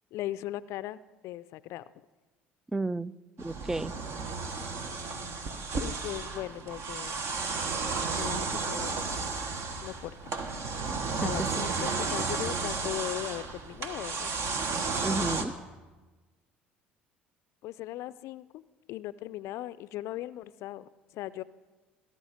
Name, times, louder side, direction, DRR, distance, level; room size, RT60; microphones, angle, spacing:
voice 1, 0.1-1.8 5.8-7.2 8.1-9.0 9.8-10.1 11.2-14.3 17.6-18.6 18.9-21.4, left 14 dB, 60° left, 17 dB, 0.4 m, -38 dB
voice 2, 2.7-3.1 3.4-3.9 11.2-11.5 15.0-15.5, right 2 dB, 10° right, 21 dB, 0.4 m, -32 dB
sound 1, 3.4-15.4, right 4 dB, 55° right, 1.3 m, -33 dB
18.5 x 11.0 x 5.0 m, 1.3 s
hypercardioid pair, 60°, 6 cm